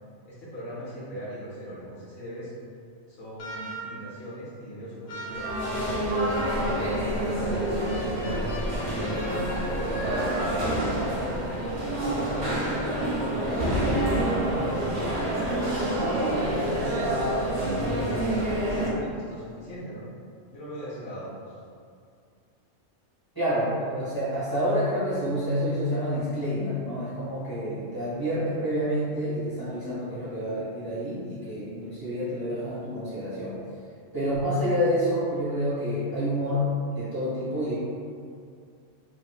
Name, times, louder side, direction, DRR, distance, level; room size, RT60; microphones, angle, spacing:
voice 1, 0.2-2.5 3.1-7.8 8.3-9.5 10.0-13.0 13.5-15.5 15.8-18.6 19.0-20.0 20.5-21.5, equal, 60° left, -9 dB, 0.9 m, -40 dB
sound 1, 3.4-4.1 5.1-6.9 7.9-11.1, equal, 80° left, 1.1 m, -38 dB
sound 2, 5.3-18.9, right 1 dB, 55° right, 0.7 m, -27 dB
voice 2, 23.3-33.6 34.1-36.7 36.9-37.7, equal, 20° right, -12 dB, 0.8 m, -28 dB
2.9 x 2.5 x 2.2 m, 2.3 s
omnidirectional pair, 1.3 m